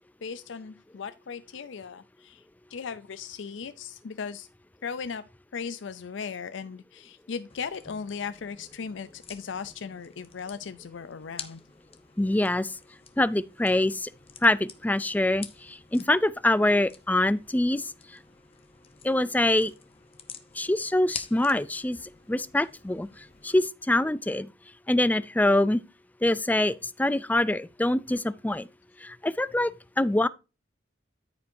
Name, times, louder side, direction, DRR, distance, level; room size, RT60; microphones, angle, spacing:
voice 1, 0.2-4.5 4.8-5.2 5.5-11.6, left 6 dB, 80° left, 0.5 m, -37 dB
sound 1, 7.5-23.7, left 7 dB, 30° left, 0.9 m, -48 dB
voice 2, 12.2-12.7 13.2-14.1 14.4-17.9 19.0-19.7 20.6-22.0 22.3-23.1 23.4-24.5 24.9-25.8 26.2-28.7 29.0-29.7 30.0-30.3, left 1 dB, 10° left, 0.4 m, -24 dB
13.5 x 5.2 x 2.7 m
head